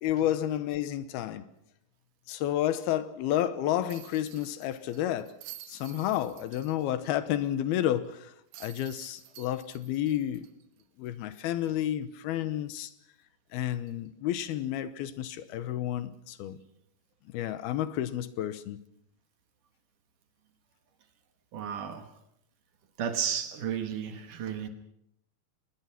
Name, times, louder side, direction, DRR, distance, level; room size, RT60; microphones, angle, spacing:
voice 1, 0.0-1.5 2.3-5.3 5.7-10.5 11.0-12.9 13.5-16.6 17.3-18.8, left 12 dB, 80° left, 3.0 m, -31 dB
sound 1, 3.9-7.1 7.4-7.5 8.5-11.2 11.6-11.7 13.9-14.1, right 12 dB, 80° right, 3.2 m, -50 dB
voice 2, 21.5-22.1 23.0-24.7, right 8 dB, 65° right, 2.8 m, -33 dB
24.5 x 20.5 x 5.9 m
omnidirectional pair, 4.4 m